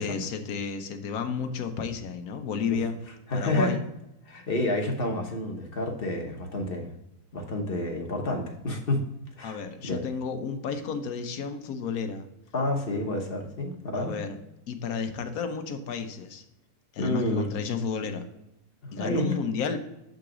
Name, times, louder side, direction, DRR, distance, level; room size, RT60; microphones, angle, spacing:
voice 1, 0.0-3.0 3.3-3.8 9.4-12.3 13.9-14.4 14.7-16.4 16.9-18.3 18.9-19.8, left 6 dB, 70° left, 8 dB, 1.2 m, -32 dB
voice 2, 3.3-3.8 4.3-6.9 7.3-9.0 9.4-10.0 12.5-14.1 17.0-17.5 18.8-19.3, left 1 dB, 40° left, 1 dB, 1.0 m, -29 dB
7.2 x 3.9 x 4.8 m, 0.87 s
omnidirectional pair, 1.6 m